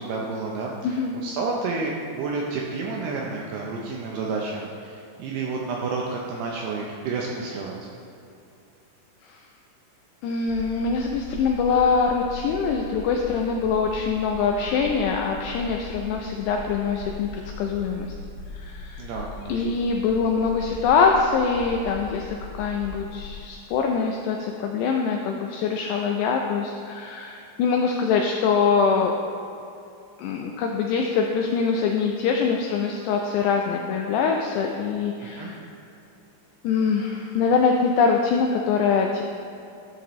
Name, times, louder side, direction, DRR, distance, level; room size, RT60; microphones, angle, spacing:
voice 1, 0.0-1.0 1.2-7.7 19.0-19.5 35.2-35.5, right 4 dB, 80° right, -2 dB, 2.4 m, -30 dB
voice 2, 0.8-1.2 9.3-9.4 10.2-18.1 18.5-19.1 19.5-29.2 30.2-35.6 36.6-39.2, left 5 dB, 85° left, 2 dB, 2.4 m, -24 dB
sound 1, 10.5-23.4, left 3 dB, 65° left, 3.4 m, -39 dB
13.0 x 7.9 x 3.1 m, 2.7 s
omnidirectional pair, 5.5 m